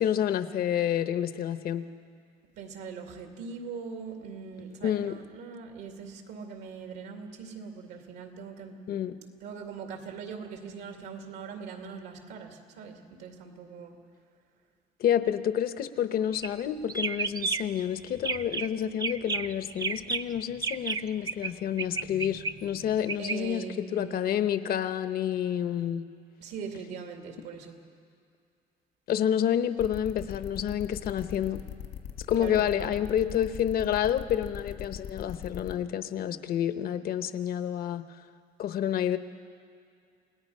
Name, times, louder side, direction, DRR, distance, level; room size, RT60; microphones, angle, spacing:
voice 1, 0.0-1.8 4.8-5.2 8.9-9.1 15.0-23.6 23.9-26.1 29.1-31.7 32.3-38.0 38.6-39.2, left 10 dB, 60° left, 11 dB, 1.0 m, -29 dB
voice 2, 2.6-8.8 9.4-14.0 23.2-24.4 26.4-27.8 32.4-33.0, right 5 dB, 85° right, 3 dB, 2.5 m, -41 dB
sound 1, 16.3-16.6 16.9-17.8 18.2-18.7 19.0-21.5 21.8-23.4, right 4 dB, 25° right, 0.4 m, -32 dB
sound 2, 29.8-35.7, left 9 dB, 80° left, 1.9 m, -40 dB
29.0 x 18.5 x 5.6 m, 2.3 s
cardioid pair, 110°, 17 cm